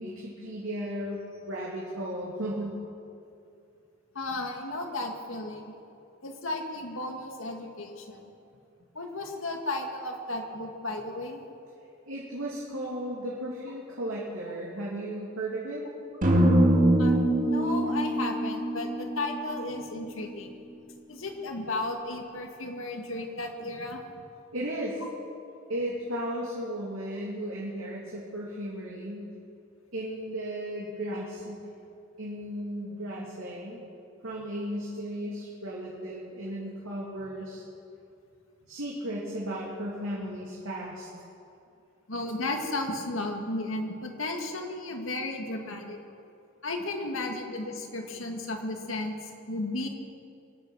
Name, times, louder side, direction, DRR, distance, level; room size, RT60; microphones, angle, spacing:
voice 1, 0.0-2.8 12.0-15.9 24.5-25.0 25.7-29.3 29.9-31.6 32.2-33.8 34.2-37.6 38.7-41.1, right 1 dB, 90° right, -5 dB, 2.7 m, -35 dB
voice 2, 4.1-5.7 6.2-8.2 8.9-11.4 17.0-20.6 21.1-24.0 42.1-46.0 46.6-49.9, left 2 dB, 75° left, 3 dB, 2.1 m, -34 dB
sound 1, 16.2-20.4, right 1 dB, 40° right, 2.3 m, -24 dB
24.5 x 8.9 x 6.3 m, 2.6 s
head